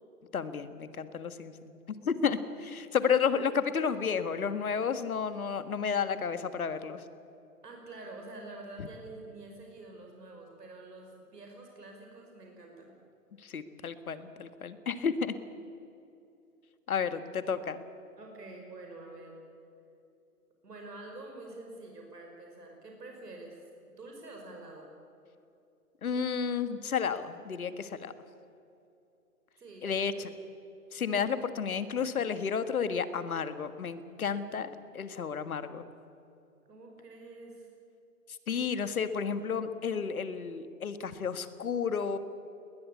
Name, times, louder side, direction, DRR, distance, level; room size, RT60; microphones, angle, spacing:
voice 1, 0.3-7.0 8.8-8.9 13.4-15.4 16.9-17.8 26.0-28.1 29.8-30.3 30.9-35.8 38.5-42.2, left 6 dB, 65° left, 11 dB, 1.7 m, -32 dB
voice 2, 7.6-12.9 18.2-19.4 20.6-23.6 23.9-24.9 29.6-30.3 36.7-37.7, right 2 dB, 80° right, 1 dB, 5.4 m, -47 dB
20.5 x 20.5 x 8.5 m, 2.7 s
hypercardioid pair, 165°, 47 cm